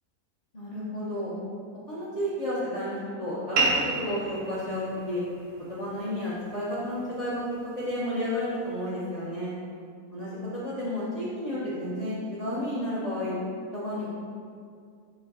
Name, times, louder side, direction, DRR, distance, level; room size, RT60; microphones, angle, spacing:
voice 1, 0.5-1.3 1.9-5.2 5.7-7.4 7.8-9.5 10.1-13.3 13.7-14.1, left 1 dB, 50° left, -9 dB, 0.4 m, -31 dB
sound 1, 3.6-8.6, right 3 dB, 80° right, 1.2 m, -33 dB
4.2 x 2.6 x 4.0 m, 2.3 s
omnidirectional pair, 1.6 m